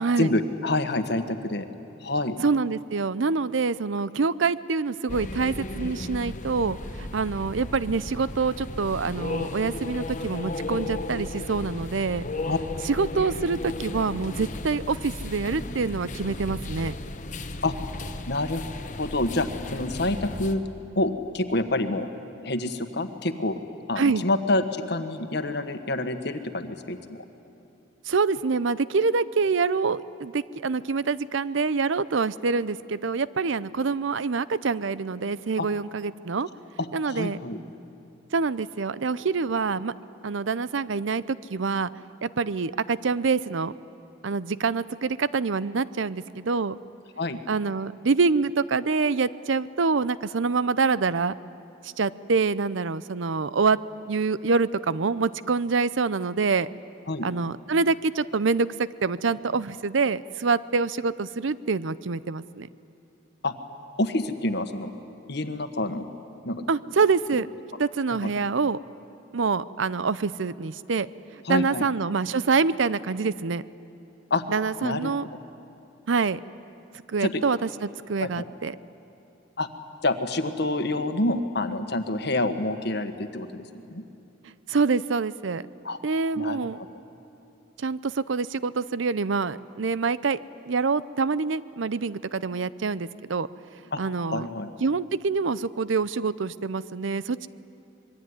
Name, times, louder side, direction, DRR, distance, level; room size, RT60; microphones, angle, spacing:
voice 1, 0.2-1.7 2.0-2.4 12.5-12.6 17.6-17.7 18.3-18.7 19.0-20.6 20.9-22.1 22.4-23.6 23.9-27.2 35.6-35.7 36.8-37.6 47.2-47.4 57.1-57.3 63.4-63.5 64.0-64.9 65.3-66.1 66.4-66.6 68.1-68.3 71.4-71.9 74.3-74.4 74.8-75.1 77.2-77.4 78.2-78.3 79.6-79.7 80.0-84.0 85.8-86.0 86.3-86.9 93.9-94.0 94.3-94.7, left 2 dB, 55° left, 8 dB, 1.5 m, -27 dB
voice 2, 2.4-12.2 12.9-16.9 24.0-24.2 28.1-36.5 36.9-37.4 38.3-39.9 40.2-41.9 42.2-43.7 44.2-46.8 47.5-51.3 51.8-53.8 54.1-56.7 57.2-62.7 66.7-67.5 67.8-68.8 69.3-71.1 71.5-73.6 74.5-75.2 76.1-76.4 77.1-78.8 84.7-85.7 86.0-86.8 87.8-90.4 90.7-93.5 94.0-94.5 94.8-97.5, right 4 dB, 75° right, 17 dB, 0.6 m, -26 dB
sound 1, 5.1-20.5, left 2 dB, 40° left, 1.2 m, -35 dB
25.5 x 22.5 x 9.7 m, 2.8 s
head